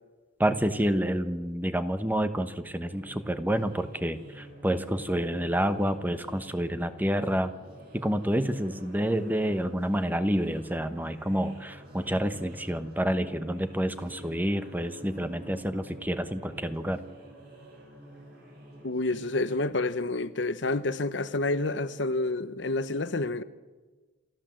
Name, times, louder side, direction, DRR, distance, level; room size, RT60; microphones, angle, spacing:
voice 1, 0.4-7.5 7.9-17.0, equal, 10° right, 1.1 m, -28 dB
sound 1, 2.9-19.6, right 1 dB, 55° right, 7.9 m, -49 dB
voice 2, 18.8-23.4, left 2 dB, 65° left, 0.9 m, -29 dB
28.0 x 13.5 x 7.7 m
head